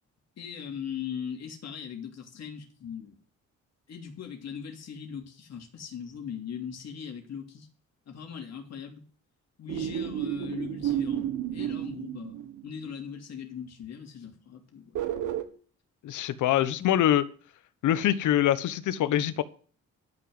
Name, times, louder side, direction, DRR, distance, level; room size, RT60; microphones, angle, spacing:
voice 1, 0.4-3.2 3.9-7.7 8.1-9.0 9.6-15.0 16.8-16.9, left 7 dB, 60° left, 3.1 m, -40 dB
sound 1, 9.7-12.9 14.9-15.4, right 10 dB, 85° right, 1.6 m, -31 dB
voice 2, 16.0-17.2 17.8-19.4, left 12 dB, 80° left, 1.0 m, -24 dB
12.0 x 6.1 x 7.9 m
cardioid pair, 90°, 30 cm